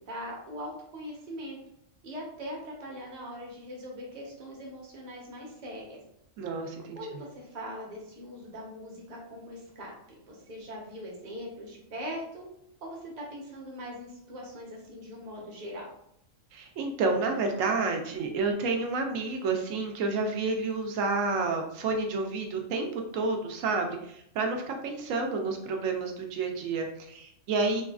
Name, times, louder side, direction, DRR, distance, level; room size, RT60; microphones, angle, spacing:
voice 1, 0.1-1.6 2.0-6.0 7.0-9.9 10.3-12.4 12.8-15.9, equal, 40° right, -2 dB, 0.8 m, -41 dB
voice 2, 6.4-7.0 16.5-27.8, right 3 dB, 80° right, 3 dB, 0.9 m, -30 dB
3.3 x 2.3 x 2.3 m, 0.74 s
omnidirectional pair, 1.4 m